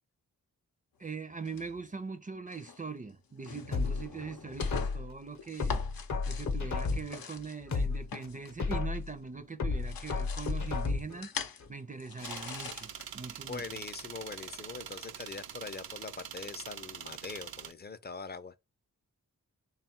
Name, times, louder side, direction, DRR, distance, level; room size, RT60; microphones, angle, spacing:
voice 1, 1.0-5.8 6.3-13.8, right 4 dB, 25° right, 0.5 m, -42 dB
sound 1, 1.4-2.0 2.5-2.8 3.3-9.4 9.6-13.3, left 6 dB, 80° left, 0.7 m, -44 dB
sound 2, 3.7-5.1 5.6-7.2 7.6-9.1 9.6-11.2 11.6-11.7, left 4 dB, 55° left, 0.8 m, -32 dB
sound 3, 12.2-17.7, right 9 dB, 85° right, 0.5 m, -44 dB
voice 2, 13.5-18.6, left 4 dB, 30° left, 0.5 m, -43 dB
3.4 x 2.4 x 4.3 m
cardioid pair, 50°, 35 cm